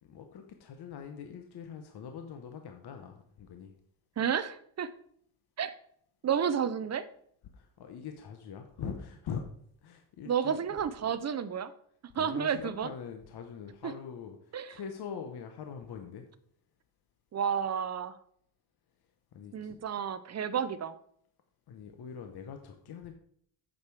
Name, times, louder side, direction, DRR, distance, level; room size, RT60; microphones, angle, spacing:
voice 1, 0.0-3.7 7.5-9.4 9.8-10.6 12.1-16.3 19.3-19.8 21.7-23.1, left 7 dB, 55° left, 5 dB, 0.9 m, -43 dB
voice 2, 4.2-4.9 5.6-5.7 6.2-7.0 10.3-11.7 12.2-12.9 13.8-13.9 14.5-14.7 17.3-18.1 19.5-21.0, right 7 dB, 35° right, 13 dB, 0.5 m, -31 dB
8.6 x 6.7 x 4.6 m, 0.65 s
cardioid pair, 150°, 48 cm